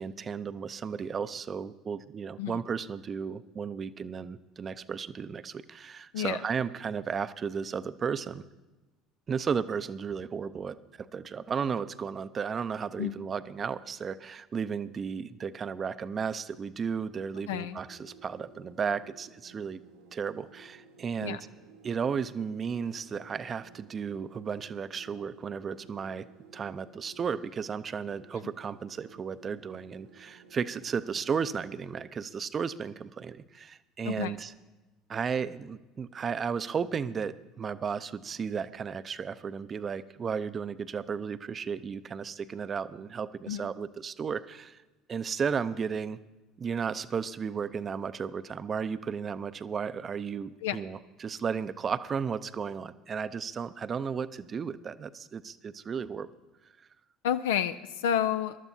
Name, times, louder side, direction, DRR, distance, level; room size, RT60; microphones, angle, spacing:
voice 1, 0.0-8.4 9.3-19.8 20.1-21.4 21.8-26.3 26.5-34.5 35.1-44.8 45.1-46.2 46.6-56.3, right 6 dB, 35° right, 15 dB, 0.6 m, -34 dB
voice 2, 17.5-17.8 21.2-21.4 34.0-34.3 43.5-43.7 50.6-50.8 57.2-58.6, left 9 dB, 70° left, 11 dB, 0.4 m, -30 dB
sound 1, 17.7-32.1, right 4 dB, 75° right, 1.3 m, -56 dB
22.0 x 12.5 x 2.7 m, 1.1 s
figure-of-eight pair, 65°, 0 cm